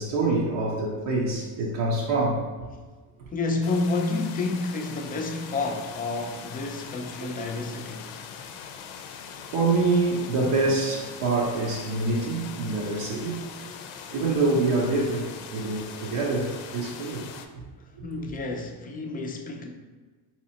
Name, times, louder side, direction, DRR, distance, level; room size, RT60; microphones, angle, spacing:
voice 1, 0.0-2.4 3.2-3.3 7.5-7.6 9.5-13.4 14.1-17.3 18.0-18.1, right 3 dB, 75° right, -4 dB, 0.8 m, -26 dB
voice 2, 3.3-8.1 18.0-19.7, left 3 dB, 20° left, 2 dB, 0.3 m, -30 dB
sound 1, 3.6-17.5, left 7 dB, 80° left, 0.5 m, -41 dB
4.0 x 2.9 x 2.8 m, 1.4 s
cardioid pair, 115°, 44 cm